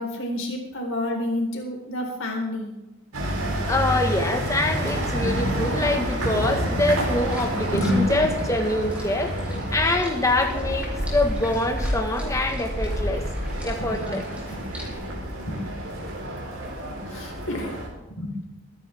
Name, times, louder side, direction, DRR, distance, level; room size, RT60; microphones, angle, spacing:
voice 1, 0.0-2.8 7.4-8.3 9.4-9.6 13.8-14.1 14.8-15.0 15.4-16.1 16.8-17.8 18.1-18.4, left 1 dB, 65° left, 1 dB, 4.2 m, -29 dB
sound 1, 3.1-17.9, equal, 85° right, 4.2 m, -29 dB
voice 2, 3.7-9.4 9.7-13.2 13.6-14.2, left 1 dB, 15° left, 4 dB, 1.5 m, -25 dB
sound 2, 7.1-14.9, equal, 5° right, 3.4 m, -33 dB
23.0 x 10.5 x 3.6 m, 1.0 s
head